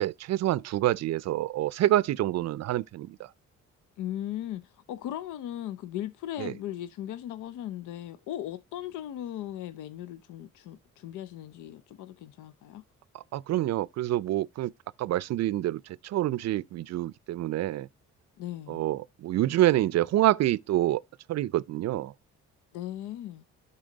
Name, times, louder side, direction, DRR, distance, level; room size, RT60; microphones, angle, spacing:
voice 1, 0.0-3.3 6.4-6.5 13.1-14.7 15.0-17.9 18.7-21.0 21.3-22.1, right 14 dB, 60° right, 0.5 m, -27 dB
voice 2, 4.0-12.8 18.4-18.8 22.7-23.4, left 12 dB, 85° left, 0.6 m, -38 dB
11.5 x 4.3 x 3.9 m
cardioid pair, 90°, 30 cm